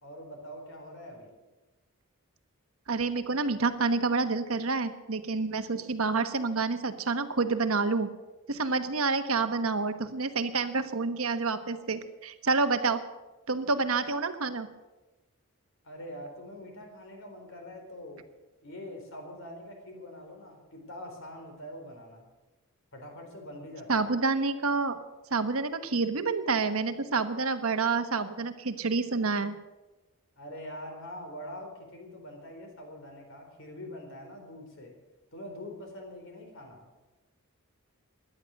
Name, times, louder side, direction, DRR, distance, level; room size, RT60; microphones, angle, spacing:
voice 1, 0.0-1.3 15.8-18.2 18.6-22.3 22.9-24.0 30.4-34.9 35.3-36.9, left 1 dB, 65° left, 3 dB, 4.1 m, -44 dB
voice 2, 2.9-8.1 8.5-13.0 13.5-14.7 23.9-25.0 25.3-29.6, right 4 dB, 70° right, 9 dB, 1.2 m, -28 dB
17.5 x 11.5 x 6.6 m, 1.1 s
head